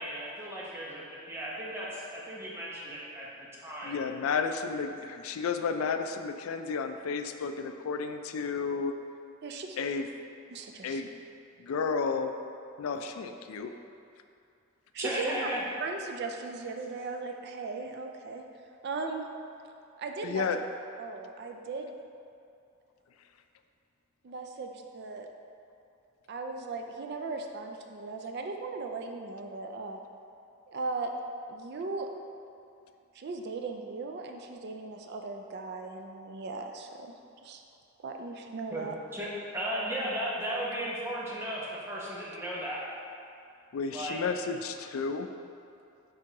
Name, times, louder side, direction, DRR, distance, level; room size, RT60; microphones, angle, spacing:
voice 1, 0.0-3.3 3.6-3.9 15.0-15.6 38.7-38.9 39.1-39.3 39.5-42.8 43.9-44.2, equal, 10° right, -6 dB, 0.9 m, -35 dB
voice 2, 3.8-9.0 9.8-10.1 10.8-11.1 11.6-12.3 12.8-13.7 20.2-20.6 43.7-45.3, left 5 dB, 80° left, 7 dB, 0.3 m, -32 dB
voice 3, 9.4-9.9 10.5-11.0 14.9-15.3 15.8-18.5 18.8-19.3 20.0-20.5 21.0-22.0 24.2-25.3 26.3-30.0 30.7-31.1 31.5-32.1 33.1-37.1 37.4-37.6 38.0-39.0, right 3 dB, 50° right, 4 dB, 0.4 m, -37 dB
8.8 x 3.6 x 3.0 m, 2.6 s
head